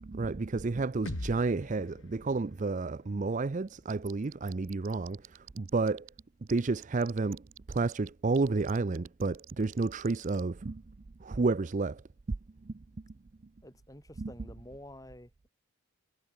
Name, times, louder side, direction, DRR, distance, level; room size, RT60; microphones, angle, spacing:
voice 1, 0.0-6.1 6.5-10.9 11.2-12.0 12.6-12.8 14.2-14.3, right 3 dB, 35° right, 0.4 m, -31 dB
sound 1, 1.1-5.0, left 1 dB, 60° left, 1.5 m, -45 dB
sound 2, 3.7-6.2 6.5-10.4, right 13 dB, 65° right, 2.0 m, -49 dB
voice 2, 13.6-15.5, left 1 dB, 15° left, 2.7 m, -49 dB
head